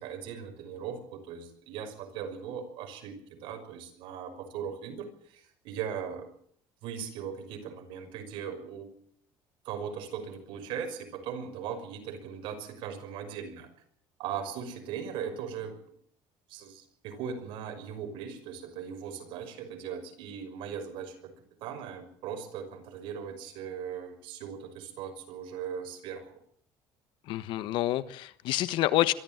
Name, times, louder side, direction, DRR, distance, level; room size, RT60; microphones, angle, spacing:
voice 1, 0.0-6.3 6.8-8.9 9.6-13.7 14.2-15.7 16.5-21.3 21.6-26.3, right 7 dB, 75° right, 6 dB, 5.8 m, -39 dB
voice 2, 27.3-29.1, left 15 dB, 65° left, 14 dB, 1.3 m, -28 dB
23.5 x 14.0 x 9.1 m, 0.63 s
cardioid pair, 155°, 9 cm